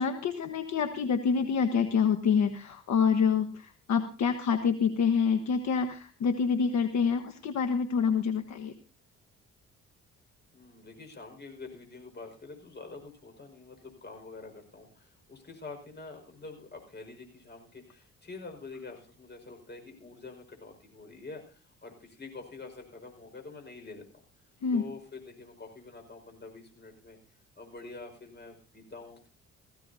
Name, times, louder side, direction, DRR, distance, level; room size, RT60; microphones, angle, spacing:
voice 1, 0.0-8.7 24.6-24.8, left 6 dB, 65° left, 7 dB, 1.3 m, -27 dB
voice 2, 10.5-24.2 24.7-27.2 27.5-29.3, left 3 dB, 35° left, 5 dB, 5.2 m, -46 dB
18.5 x 15.5 x 2.7 m, 0.35 s
cardioid pair, 90°, 30 cm